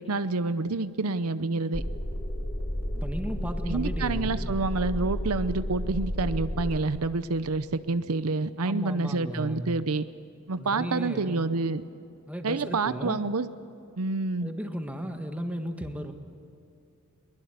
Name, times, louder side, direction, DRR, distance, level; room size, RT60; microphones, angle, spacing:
voice 1, 0.0-1.8 3.7-10.1 10.5-11.8 12.4-13.5 14.0-14.5, right 3 dB, 75° right, 13 dB, 0.7 m, -28 dB
sound 1, 1.7-6.8, equal, 10° left, 5.0 m, -32 dB
voice 2, 2.9-4.6 8.6-9.8 10.6-11.6 12.3-13.3 14.4-16.1, equal, 5° right, 5 dB, 1.6 m, -35 dB
23.0 x 21.0 x 8.2 m, 2.7 s
head